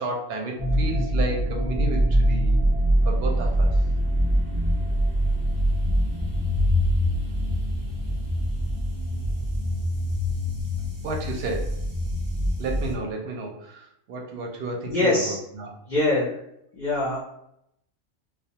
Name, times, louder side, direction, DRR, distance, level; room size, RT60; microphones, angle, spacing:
voice 1, 0.0-2.6 3.0-3.7 11.0-11.7 12.6-15.8, right 2 dB, 60° right, 1 dB, 0.7 m, -32 dB
sound 1, 0.6-12.9, equal, 35° right, 0.3 m, -24 dB
voice 2, 14.9-15.4 15.9-16.3 16.7-17.2, left 2 dB, 55° left, -6 dB, 0.5 m, -23 dB
2.3 x 2.1 x 2.7 m, 0.78 s
omnidirectional pair, 1.3 m